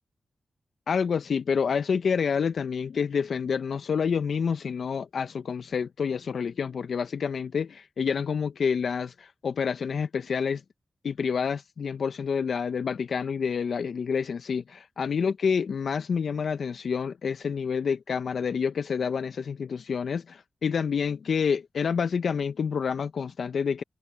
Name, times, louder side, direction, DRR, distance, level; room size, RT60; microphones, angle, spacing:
voice 1, 0.9-10.6 11.0-23.8, left 6 dB, 75° left, 0.5 m, -28 dB
cardioid pair, 60°, 0 cm